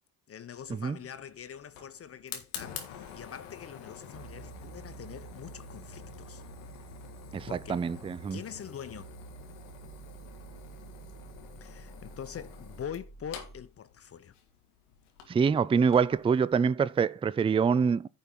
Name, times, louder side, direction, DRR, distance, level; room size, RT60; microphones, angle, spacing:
voice 1, 0.3-6.4 7.5-7.9 8.3-9.1 11.6-14.3, left 8 dB, 40° left, 0.8 m, -44 dB
Fire, 0.6-16.2, left 8 dB, 85° left, 1.7 m, -48 dB
sound 1, 4.1-13.7, right 6 dB, 80° right, 1.7 m, -50 dB
voice 2, 7.3-8.4 15.3-18.1, right 6 dB, 15° right, 0.4 m, -25 dB
10.0 x 5.5 x 4.6 m
hypercardioid pair, 60°, 37 cm